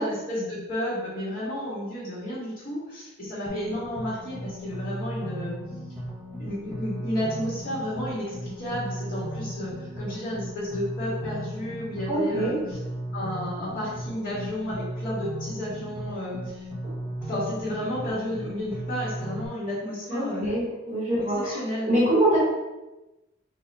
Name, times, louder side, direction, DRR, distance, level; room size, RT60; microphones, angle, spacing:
voice 1, 0.0-5.6 6.4-12.8 13.1-16.7 17.2-20.6 21.4-21.9, left 1 dB, 40° left, -11 dB, 1.3 m, -32 dB
sound 1, 3.5-19.5, equal, 10° right, 0.7 m, -36 dB
voice 2, 12.1-12.5 16.8-16.9 20.1-21.6 21.9-22.4, right 1 dB, 40° right, -6 dB, 1.1 m, -24 dB
3.9 x 2.2 x 4.0 m, 1.0 s
head